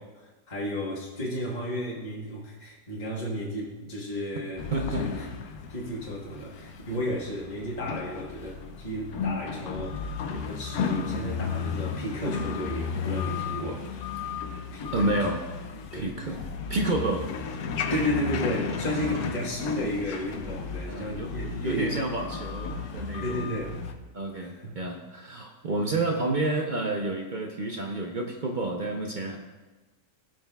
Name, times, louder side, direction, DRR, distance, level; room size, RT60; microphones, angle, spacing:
voice 1, 0.1-5.3 5.7-14.1 14.7-15.2 15.9-16.3 17.9-22.0 23.2-23.9 24.3-24.7, equal, 30° left, -4 dB, 1.3 m, -33 dB
sound 1, 4.6-23.9, left 5 dB, 70° left, 1.1 m, -34 dB
voice 2, 4.7-5.3 14.9-15.5 15.9-16.4 16.7-17.3 18.8-19.3 20.8-23.6 24.1-29.4, right 2 dB, 50° right, 2 dB, 0.5 m, -30 dB
17.5 x 6.0 x 2.3 m, 1.2 s
omnidirectional pair, 1.7 m